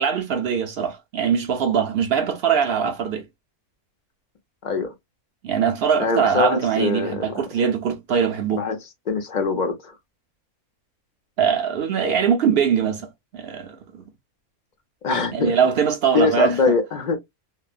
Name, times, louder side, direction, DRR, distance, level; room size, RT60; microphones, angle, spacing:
voice 1, 0.0-3.2 5.4-8.6 11.4-14.0 15.3-16.6, right 7 dB, 65° right, 0.6 m, -22 dB
voice 2, 4.6-4.9 6.0-7.4 8.5-8.8 9.1-9.9 15.0-15.6 16.1-17.2, left 4 dB, 45° left, 0.6 m, -23 dB
3.2 x 2.1 x 2.2 m
omnidirectional pair, 1.5 m